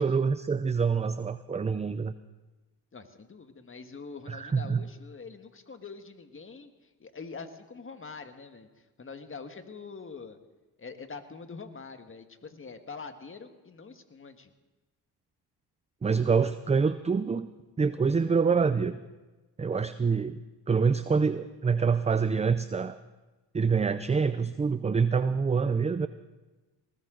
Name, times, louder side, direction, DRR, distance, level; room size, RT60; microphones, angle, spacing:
voice 1, 0.0-2.1 4.3-4.8 16.0-17.5 17.8-19.0 19.6-20.4 20.7-23.0 23.5-26.1, right 5 dB, 15° right, 12 dB, 0.5 m, -26 dB
voice 2, 2.9-10.4 10.8-14.5, left 4 dB, 30° left, 7 dB, 1.6 m, -44 dB
20.0 x 19.0 x 3.9 m, 1.1 s
cardioid pair, 85°, 42 cm